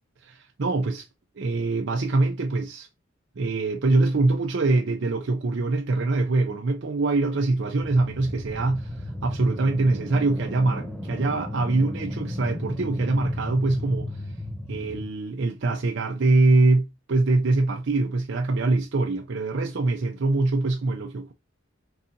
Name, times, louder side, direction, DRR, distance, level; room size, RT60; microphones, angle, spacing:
voice 1, 0.2-1.1 1.4-2.9 3.4-14.1 14.7-21.3, right 2 dB, 60° right, 0.5 m, -24 dB
sound 1, 7.8-15.1, left 1 dB, ahead, 0.6 m, -34 dB
4.7 x 4.1 x 2.6 m
head